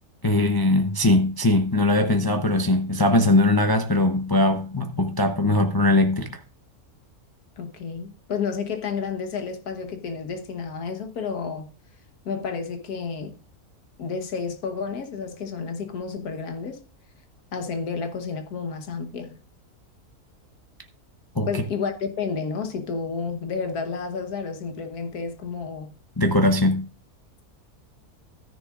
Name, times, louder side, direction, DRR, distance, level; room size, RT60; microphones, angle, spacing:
voice 1, 0.2-6.3 21.4-21.5 26.2-26.8, left 2 dB, 25° left, 0.5 m, -20 dB
voice 2, 7.6-11.7 12.2-13.3 14.0-16.8 17.5-19.4 21.5-25.9, left 5 dB, 90° left, 1.7 m, -31 dB
13.5 x 10.0 x 2.4 m
omnidirectional pair, 1.6 m